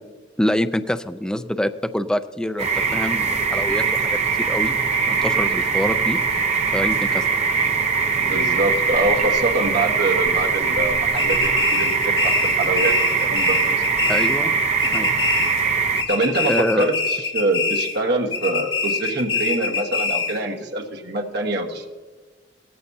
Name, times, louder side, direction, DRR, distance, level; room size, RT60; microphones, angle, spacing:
voice 1, 0.4-4.8 5.1-6.2 6.7-7.3 14.1-14.5 14.9-15.2 16.4-16.9, left 1 dB, 5° left, 9 dB, 0.4 m, -25 dB
sound 1, 2.6-16.0, right 5 dB, 35° right, 0.8 m, -21 dB
voice 2, 8.2-12.9 13.2-13.8 16.1-21.9, right 2 dB, 60° right, 2 dB, 1.5 m, -24 dB
sound 2, 11.2-14.5 14.8-15.7 16.0-18.0 18.3-20.4, left 4 dB, 30° left, 2.5 m, -25 dB
18.5 x 14.0 x 2.8 m, 1.3 s
head